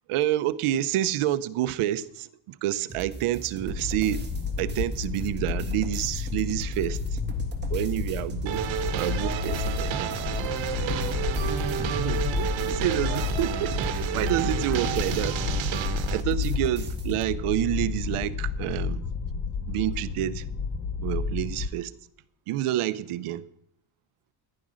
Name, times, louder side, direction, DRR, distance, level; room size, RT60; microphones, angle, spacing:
voice 1, 0.1-4.3 4.6-7.2 7.7-8.7 8.9-10.1 11.8-15.4 16.1-19.1 19.7-20.5 21.0-21.9 22.5-23.4, right 13 dB, 85° right, 0.8 m, -28 dB
sound 1, 2.9-17.3, right 5 dB, 20° right, 1.8 m, -41 dB
sound 2, 3.7-21.7, left 5 dB, 25° left, 0.8 m, -31 dB
sound 3, 8.5-16.2, right 9 dB, 65° right, 1.4 m, -31 dB
voice 2, 9.5-11.9, right 10 dB, 40° right, 0.7 m, -45 dB
14.5 x 11.0 x 6.3 m
cardioid pair, 170°, 50 cm